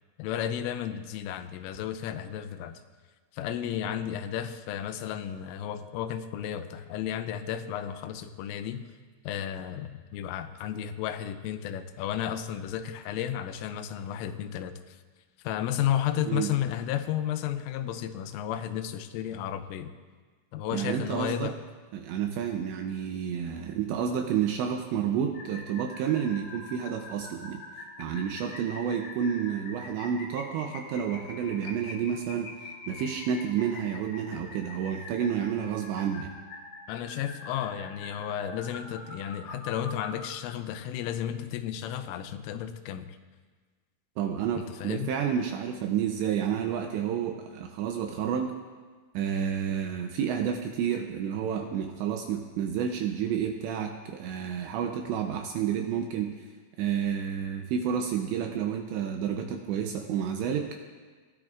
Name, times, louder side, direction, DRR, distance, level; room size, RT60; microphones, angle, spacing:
voice 1, 0.2-2.8 3.3-8.9 9.2-15.0 15.4-19.9 20.5-21.6 36.9-43.2 44.5-45.1, left 10 dB, 85° left, 10 dB, 3.2 m, -33 dB
voice 2, 20.7-21.5 21.9-27.6 28.0-36.3 44.2-48.6 49.1-56.3 56.8-60.7, right 8 dB, 80° right, 4 dB, 2.6 m, -30 dB
sound 1, 25.3-40.3, left 2 dB, 55° left, 3.5 m, -44 dB
20.5 x 14.0 x 2.5 m, 1.4 s
omnidirectional pair, 5.7 m